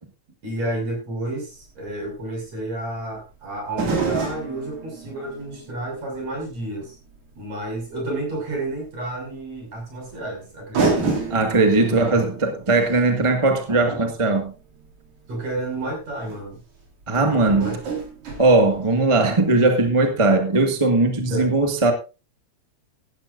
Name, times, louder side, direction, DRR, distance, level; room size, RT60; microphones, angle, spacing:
voice 1, 0.4-7.0 7.4-11.2 12.1-12.3 15.3-16.6 17.1-17.8 21.3-21.5, right 2 dB, 60° right, 0 dB, 7.6 m, -31 dB
sound 1, 1.6-1.7 3.7-6.7 7.1-7.2 8.8-8.9 10.1-10.2 10.7-14.8 15.8-15.9 16.2-16.4 17.4-19.4 19.6-19.7, right 4 dB, 80° right, 5.1 m, -29 dB
voice 2, 11.3-14.5 17.1-17.8 18.4-21.9, right 2 dB, 15° right, 5 dB, 1.3 m, -19 dB
16.5 x 12.5 x 2.6 m, 0.30 s
omnidirectional pair, 3.3 m